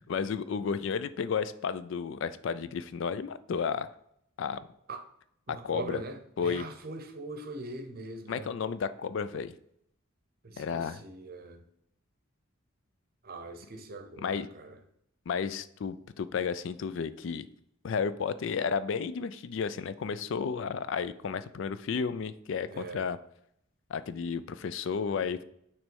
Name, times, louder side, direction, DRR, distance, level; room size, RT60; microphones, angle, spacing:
voice 1, 0.0-3.9 4.4-4.6 5.5-6.0 6.4-6.7 8.3-9.5 10.6-11.0 14.2-14.5 15.3-17.5 17.8-23.2 23.9-25.4, left 6 dB, 60° left, 0.3 m, -32 dB
voice 2, 5.5-8.5 10.4-11.6 13.2-14.8 22.7-23.0, right 2 dB, 45° right, 0.7 m, -42 dB
5.9 x 3.2 x 5.3 m
head